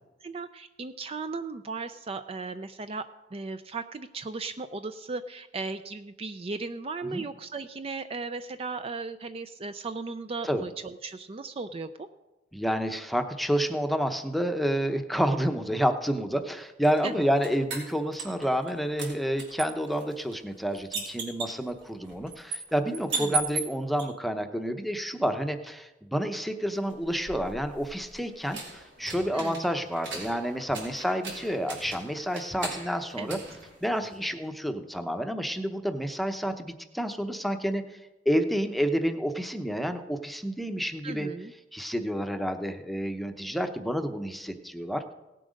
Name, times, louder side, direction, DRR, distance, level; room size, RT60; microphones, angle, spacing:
voice 1, 0.2-3.0 3.3-12.1 17.0-17.1 23.1-23.5 29.3-29.7 33.2-33.4 41.0-41.5, right 3 dB, 35° right, 10 dB, 0.4 m, -36 dB
voice 2, 12.5-33.4 33.8-38.0 38.3-41.3 41.7-45.1, equal, ahead, 7 dB, 0.8 m, -29 dB
sound 1, 16.8-18.7 19.0-24.0 26.8-34.3, right 4 dB, 90° right, 3.5 m, -38 dB
17.5 x 7.6 x 5.1 m, 1.1 s
head